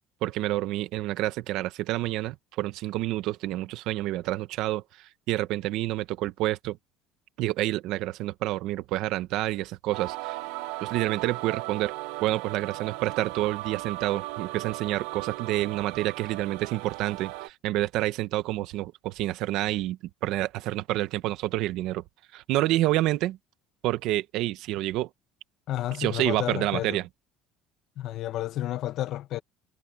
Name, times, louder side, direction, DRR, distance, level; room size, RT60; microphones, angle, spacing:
voice 1, 0.2-6.8 7.4-10.4 10.8-11.9 12.2-22.0 22.3-23.4 23.8-25.1 26.0-27.1, right 16 dB, 60° right, 1.2 m, -28 dB
sound 1, 9.9-17.5, right 19 dB, 90° right, 1.0 m, -37 dB
voice 2, 25.7-27.0 28.0-29.4, left 13 dB, 50° left, 1.2 m, -31 dB
cardioid pair, 160°, 0 cm